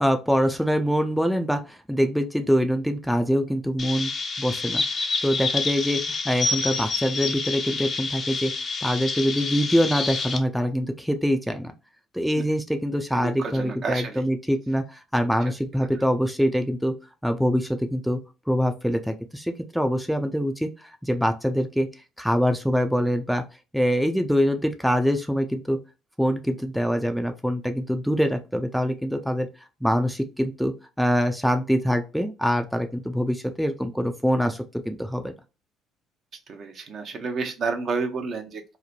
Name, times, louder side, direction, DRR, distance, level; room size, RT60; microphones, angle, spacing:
voice 1, 0.0-4.1 4.4-4.8 5.2-8.5 8.8-11.7 12.1-16.9 17.2-18.2 18.5-21.9 22.2-23.4 23.7-25.8 26.2-29.5 29.8-35.3, equal, ahead, 6 dB, 0.5 m, -24 dB
Chirp tweet, 3.8-10.4, left 4 dB, 45° left, 0.6 m, -28 dB
voice 2, 13.1-14.2 36.5-38.8, right 4 dB, 55° right, 4 dB, 0.7 m, -30 dB
3.1 x 2.0 x 2.3 m, 0.29 s
hypercardioid pair, 60°, 0 cm